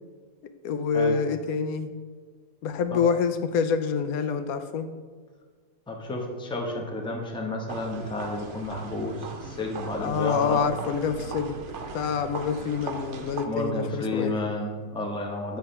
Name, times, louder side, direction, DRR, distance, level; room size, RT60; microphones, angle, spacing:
voice 1, 0.6-1.9 2.6-4.9 10.0-11.6 11.9-14.3, left 6 dB, 85° left, 10 dB, 1.0 m, -26 dB
voice 2, 5.9-10.6 13.5-15.6, left 2 dB, 5° left, 1 dB, 0.7 m, -31 dB
sound 1, 7.7-13.5, right 4 dB, 60° right, 0.9 m, -38 dB
9.3 x 3.4 x 5.4 m, 1.5 s
omnidirectional pair, 1.5 m